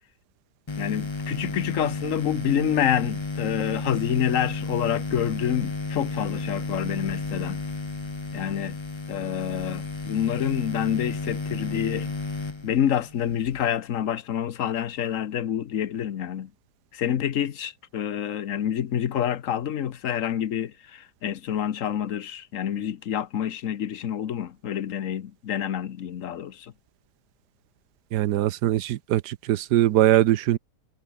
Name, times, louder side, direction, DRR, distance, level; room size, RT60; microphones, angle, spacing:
sound 1, 0.7-13.6, left 3 dB, 20° left, 0.9 m, -32 dB
voice 1, 0.8-7.6 8.3-8.8 9.1-12.1 12.6-16.5 16.9-26.7, left 9 dB, 55° left, 1.2 m, -27 dB
voice 2, 28.1-30.6, right 13 dB, 80° right, 1.3 m, -21 dB
omnidirectional pair, 1.8 m